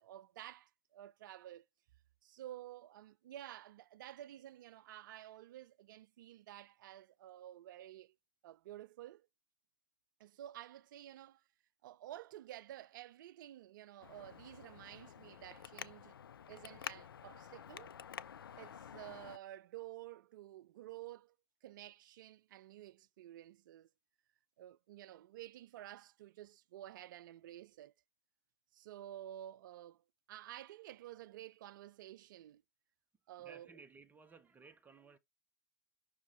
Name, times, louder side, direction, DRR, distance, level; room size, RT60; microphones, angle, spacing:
voice 1, 0.0-1.6 2.2-8.1 8.4-9.3 10.2-11.4 11.8-16.2 16.5-17.9 18.6-21.3 21.6-23.9 24.6-27.9 28.7-32.6 33.3-33.8, right 13 dB, 60° right, 0.4 m, -52 dB
Traffic noise roadway noise, 14.0-19.4, left 8 dB, 75° left, 0.4 m, -50 dB
voice 2, 33.4-35.2, right 4 dB, 15° right, 0.8 m, -58 dB
6.1 x 4.5 x 3.4 m
figure-of-eight pair, 90°, 12 cm